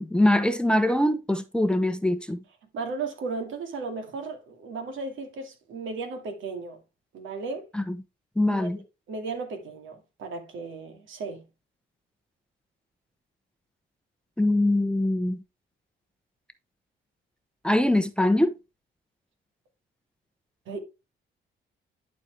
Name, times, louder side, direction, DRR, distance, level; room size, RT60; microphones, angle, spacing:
voice 1, 0.0-2.4 7.7-8.0 8.4-8.8 14.4-15.4 17.6-18.5, left 1 dB, 5° left, 0.9 m, -23 dB
voice 2, 2.7-6.8 7.1-7.6 8.5-8.7 9.1-11.4 20.7-20.8, right 4 dB, 75° right, 2.3 m, -35 dB
11.5 x 4.4 x 3.3 m
cardioid pair, 90°, 20 cm